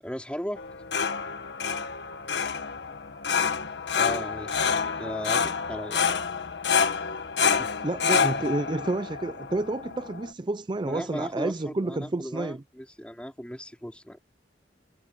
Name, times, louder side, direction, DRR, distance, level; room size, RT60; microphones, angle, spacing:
voice 1, 0.0-0.6 4.0-4.7 5.0-6.1 7.4-7.7 10.8-14.2, equal, 5° left, 3.8 m, -37 dB
sound 1, 0.6-10.3, left 6 dB, 80° left, 1.5 m, -28 dB
voice 2, 7.8-12.6, right 2 dB, 25° right, 0.5 m, -30 dB
head